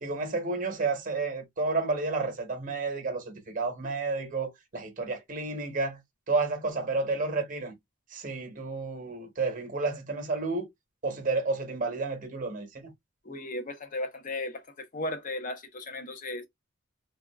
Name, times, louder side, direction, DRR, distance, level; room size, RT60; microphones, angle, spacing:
voice 1, 0.0-6.0 6.3-7.7 8.1-10.7 11.0-12.9, right 3 dB, 40° right, 0.9 m, -31 dB
voice 2, 13.2-16.4, left 2 dB, 40° left, 0.7 m, -36 dB
3.5 x 2.3 x 2.2 m
head